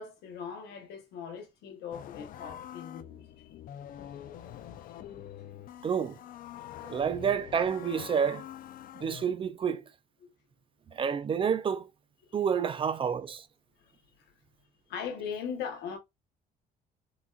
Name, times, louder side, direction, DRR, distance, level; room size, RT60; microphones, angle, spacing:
voice 1, 0.0-3.5 4.1-5.1 12.3-12.4 13.8-14.0 14.9-16.0, left 7 dB, 85° left, 1.1 m, -40 dB
sound 1, 1.9-9.2, left 11 dB, 55° left, 0.4 m, -45 dB
voice 2, 5.8-6.2 6.8-8.4 9.0-9.8 10.9-11.9 12.3-13.4, right 7 dB, 30° right, 0.4 m, -29 dB
3.8 x 2.4 x 2.3 m
cardioid pair, 110°, 17 cm